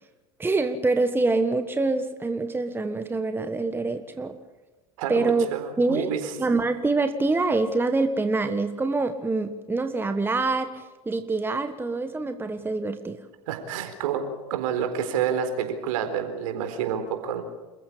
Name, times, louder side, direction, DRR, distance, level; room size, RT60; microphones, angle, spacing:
voice 1, 0.4-4.4 5.1-5.5 5.8-13.2, right 3 dB, 10° right, 8 dB, 1.5 m, -25 dB
voice 2, 5.0-6.3 13.5-14.2 14.5-17.4, right 8 dB, 65° right, 7 dB, 4.1 m, -28 dB
27.5 x 15.0 x 8.6 m, 1.2 s
hypercardioid pair, 85°, 19 cm